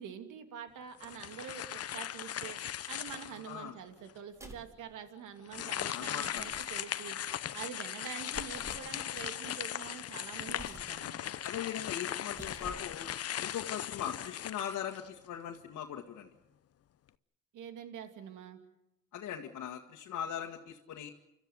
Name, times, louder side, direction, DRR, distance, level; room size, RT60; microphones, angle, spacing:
voice 1, 0.0-2.6 2.9-7.2 7.5-11.3 17.5-18.6, right 8 dB, 85° right, 7 dB, 2.7 m, -46 dB
sound 1, 1.0-3.5 4.1-4.2 5.5-15.3, left 11 dB, 55° left, 0.8 m, -38 dB
voice 2, 3.3-3.8 5.9-6.5 11.4-13.1 13.4-16.3 19.1-21.1, left 9 dB, 80° left, 1 dB, 1.9 m, -40 dB
sound 2, 4.3-4.8 6.2-6.8 8.3-8.9 10.5-11.0 12.2-13.0, right 1 dB, 10° right, 2.9 m, -49 dB
29.5 x 13.5 x 9.5 m, 0.92 s
cardioid pair, 90°, 30 cm